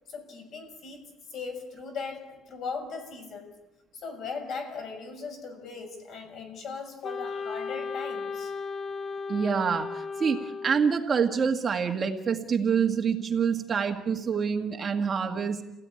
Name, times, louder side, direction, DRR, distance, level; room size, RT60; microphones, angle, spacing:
voice 1, 0.1-3.6 3.9-8.5, left 5 dB, 50° left, 6.6 m, -38 dB
Wind instrument woodwind instrument, 7.0-11.0, left 4 dB, 25° left, 0.9 m, -35 dB
voice 2, 9.3-15.6, right 6 dB, 25° right, 1.7 m, -26 dB
29.0 x 17.5 x 9.8 m
cardioid pair, 165°, 0 cm